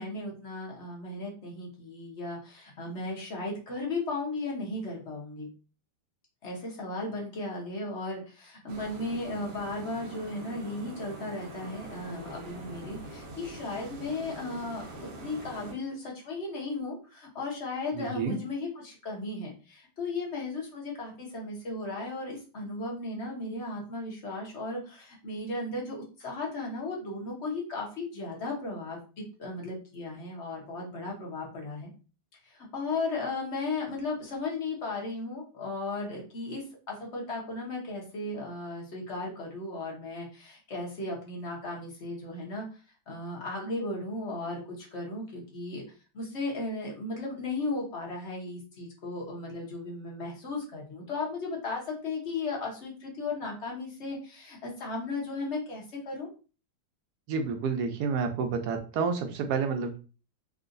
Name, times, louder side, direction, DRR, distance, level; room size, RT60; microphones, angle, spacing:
voice 1, 0.0-5.5 6.4-14.8 15.2-31.9 32.4-42.8 43.1-45.8 46.1-56.3, left 2 dB, 45° left, -2 dB, 1.2 m, -36 dB
sound 1, 8.7-15.7, right 2 dB, 90° right, 1.4 m, -43 dB
voice 2, 17.9-18.4 57.3-60.0, right 5 dB, 70° right, 6 dB, 1.1 m, -29 dB
3.7 x 2.4 x 2.5 m, 0.34 s
omnidirectional pair, 1.8 m